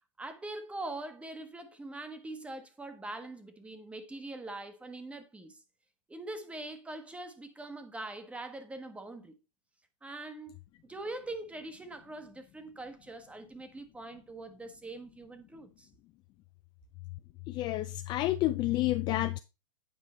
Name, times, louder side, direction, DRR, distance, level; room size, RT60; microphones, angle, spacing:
voice 1, 0.2-5.6 6.1-9.4 10.0-10.6 10.8-15.9, right 2 dB, 5° right, 1.0 m, -43 dB
voice 2, 17.5-19.4, left 16 dB, 25° left, 0.3 m, -29 dB
8.7 x 4.8 x 4.1 m
hypercardioid pair, 125°, 16 cm